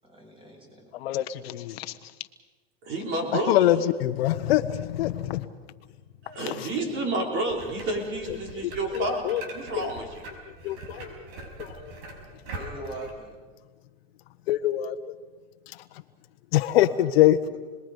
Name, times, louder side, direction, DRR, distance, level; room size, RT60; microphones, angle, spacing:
voice 1, 0.0-1.2 12.6-13.4 16.8-17.0 17.5-17.6, right 1 dB, 15° right, 0 dB, 7.6 m, -42 dB
voice 2, 0.9-1.9 3.5-5.5 6.5-6.6 8.3-8.4 8.6-9.4 9.8-9.9 10.6-11.1 11.6-11.9 14.5-15.0 16.5-17.6, left 13 dB, 80° left, 10 dB, 1.2 m, -24 dB
voice 3, 2.8-3.7 6.2-10.0, right 2 dB, 40° right, 1 dB, 4.6 m, -30 dB
sound 1, 7.5-13.1, right 2 dB, 70° right, 5.5 m, -42 dB
30.0 x 21.0 x 5.4 m, 1.4 s
supercardioid pair, 130°, 30 cm